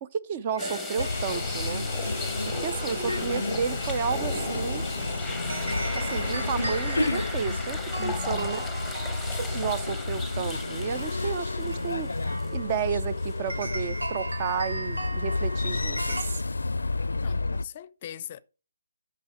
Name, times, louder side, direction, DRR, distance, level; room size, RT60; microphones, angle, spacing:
voice 1, 0.0-1.9 2.5-4.9 5.9-8.6 9.4-12.1 12.5-16.4, right 7 dB, 30° right, 0.5 m, -32 dB
sound 1, 0.5-16.2, right 1 dB, 90° right, 1.9 m, -39 dB
sound 2, 0.6-12.8 13.2-13.3 15.7-15.8, left 2 dB, ahead, 1.0 m, -37 dB
sound 3, 1.0-17.6, left 3 dB, 85° left, 0.4 m, -31 dB
voice 2, 8.0-8.6 17.2-18.4, left 10 dB, 35° left, 0.5 m, -41 dB
9.5 x 5.7 x 4.8 m
figure-of-eight pair, 150°, 0 cm